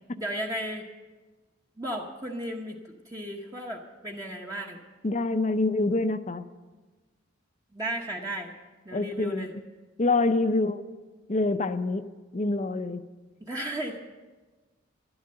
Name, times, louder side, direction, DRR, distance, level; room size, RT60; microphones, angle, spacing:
voice 1, 0.2-0.9 1.8-4.8 7.7-8.5 8.8-9.5 13.4-14.0, right 1 dB, 20° right, -1 dB, 1.0 m, -34 dB
voice 2, 5.0-6.4 8.9-9.5 10.0-10.8 11.3-12.1 12.3-13.0, left 2 dB, 35° left, 11 dB, 0.6 m, -26 dB
12.0 x 12.0 x 7.8 m, 1.3 s
head